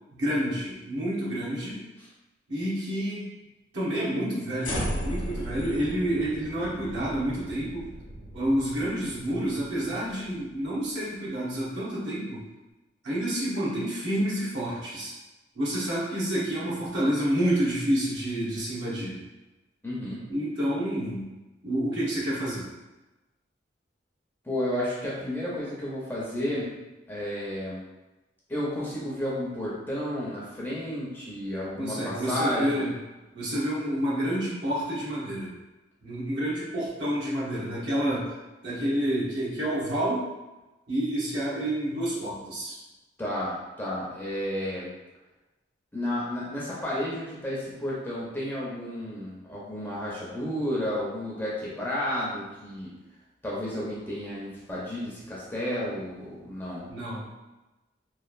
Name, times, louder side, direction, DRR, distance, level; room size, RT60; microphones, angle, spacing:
voice 1, 0.1-1.8 2.5-3.3 3.7-7.8 8.3-12.4 13.0-15.1 15.5-19.2 20.3-21.3 21.6-22.7 31.8-33.0 33.3-35.5 36.0-38.3 38.6-40.3 40.9-42.8 56.9-57.3, right 1 dB, 70° right, -8 dB, 1.1 m, -29 dB
sound 1, 4.6-10.9, equal, 85° left, 0.6 m, -36 dB
voice 2, 19.8-20.2 24.4-26.7 27.1-27.8 28.5-32.9 43.2-44.9 45.9-52.9 53.4-56.9, left 1 dB, 10° left, -7 dB, 0.6 m, -32 dB
3.1 x 2.3 x 2.4 m, 1.1 s
head